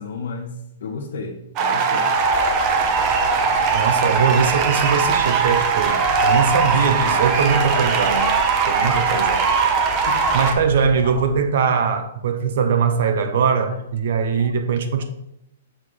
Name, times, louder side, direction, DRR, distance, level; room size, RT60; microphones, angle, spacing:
voice 1, 0.0-2.2 6.6-7.9 8.4-8.5 8.8-10.4 11.0-11.3 11.7-11.9 13.0-13.4 14.3-14.5, left 4 dB, 65° left, 1.1 m, -35 dB
sound 1, 1.6-10.5, right 5 dB, 25° right, 0.8 m, -20 dB
sound 2, 2.1-11.4, right 3 dB, ahead, 2.1 m, -37 dB
voice 2, 3.7-8.4 8.7-9.4 10.3-15.0, right 6 dB, 55° right, 0.9 m, -21 dB
6.6 x 3.8 x 6.3 m
hypercardioid pair, 165°, 0 cm